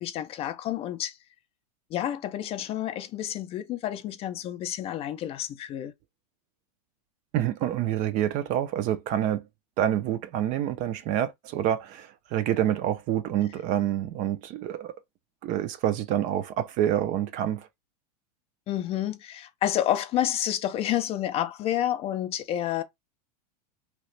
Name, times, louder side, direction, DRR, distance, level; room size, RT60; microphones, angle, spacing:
voice 1, 0.0-1.2 1.9-5.9 18.7-22.8, left 12 dB, 30° left, 0.4 m, -29 dB
voice 2, 7.3-9.5 9.8-15.0 15.4-17.7, right 11 dB, 40° right, 0.4 m, -27 dB
2.9 x 2.3 x 3.2 m
supercardioid pair, 130°, 21 cm